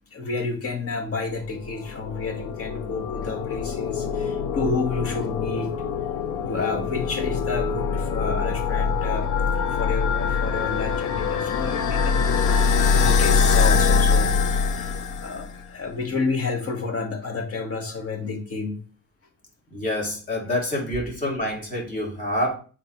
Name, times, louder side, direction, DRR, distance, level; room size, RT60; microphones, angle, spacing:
voice 1, 0.1-5.7 6.4-14.3 14.8-18.8, left 4 dB, 50° left, 2.1 m, -30 dB
sound 1, 1.4-15.6, left 5 dB, 80° left, 0.8 m, -24 dB
voice 2, 19.7-22.5, left 1 dB, 25° left, 3.6 m, -27 dB
7.4 x 4.4 x 3.4 m
cardioid pair, 90°, 30 cm